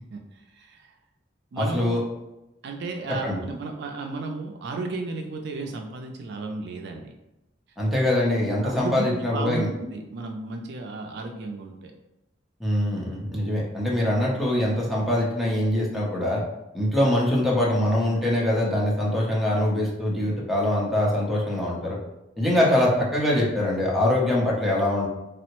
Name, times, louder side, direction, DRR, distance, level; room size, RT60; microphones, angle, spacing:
voice 1, 0.1-0.9 1.5-1.9 2.6-7.1 8.6-11.9, right 3 dB, 65° right, 3 dB, 0.3 m, -34 dB
voice 2, 1.6-2.0 3.2-3.4 7.8-9.7 12.6-16.4 16.7-22.0 22.4-25.1, left 1 dB, ahead, -5 dB, 0.6 m, -23 dB
3.5 x 2.0 x 2.9 m, 0.95 s
head